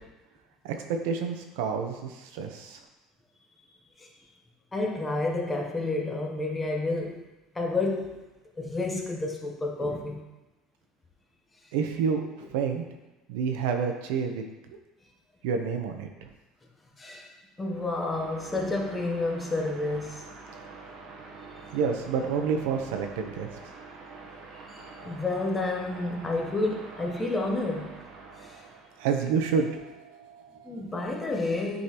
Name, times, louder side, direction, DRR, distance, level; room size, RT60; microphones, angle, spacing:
voice 1, 0.6-2.8 11.7-12.2 12.5-12.8 13.3-14.4 15.4-16.3 21.7-23.5 29.0-30.8, right 6 dB, 85° right, 4 dB, 0.8 m, -29 dB
voice 2, 4.7-7.2 7.5-8.3 8.6-10.2 17.0-17.3 17.6-20.2 24.7-28.0 28.4-28.6 30.6-31.8, left 2 dB, 15° left, 1 dB, 0.9 m, -30 dB
sound 1, 17.6-29.1, right 4 dB, 55° right, 0.9 m, -46 dB
9.6 x 3.9 x 2.9 m, 1.1 s
cardioid pair, 135°, 0 cm